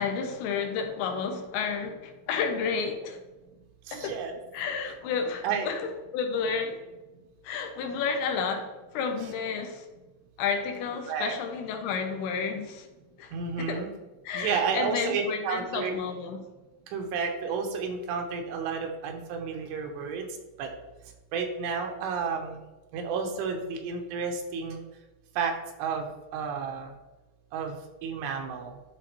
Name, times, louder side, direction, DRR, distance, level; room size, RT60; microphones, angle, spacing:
voice 1, 0.0-3.2 3.9-4.2 4.5-6.8 7.4-9.9 10.4-12.9 13.2-13.3 13.6-13.9 14.3-16.5, left 6 dB, 80° left, 5 dB, 2.5 m, -31 dB
voice 2, 3.9-4.3 4.9-5.0 5.4-5.7 11.1-11.3 13.3-13.9 14.3-16.0 16.9-20.3 20.6-20.7 21.3-22.6 22.9-24.8 25.4-26.9 27.5-27.8 28.0-28.8, right 5 dB, 90° right, 4 dB, 3.1 m, -31 dB
12.0 x 4.0 x 3.0 m, 1.1 s
omnidirectional pair, 4.8 m